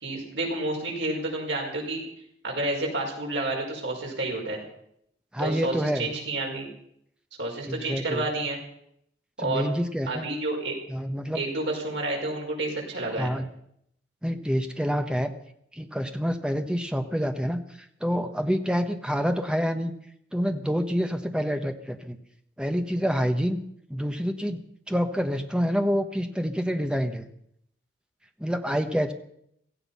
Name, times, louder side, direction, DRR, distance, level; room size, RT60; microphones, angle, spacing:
voice 1, 0.0-2.0 2.4-4.6 5.4-6.7 7.4-8.6 9.4-9.7 10.1-10.8 11.3-13.3, right 2 dB, 80° right, 0 dB, 5.3 m, -30 dB
voice 2, 5.3-6.1 7.7-8.3 9.4-10.3 10.9-11.4 13.2-13.4 14.2-15.3 15.7-17.6 18.0-19.9 20.3-22.2 22.6-23.6 23.9-24.6 24.9-27.3 28.4-29.1, equal, 5° right, 6 dB, 1.1 m, -27 dB
16.5 x 15.0 x 5.6 m, 0.71 s
head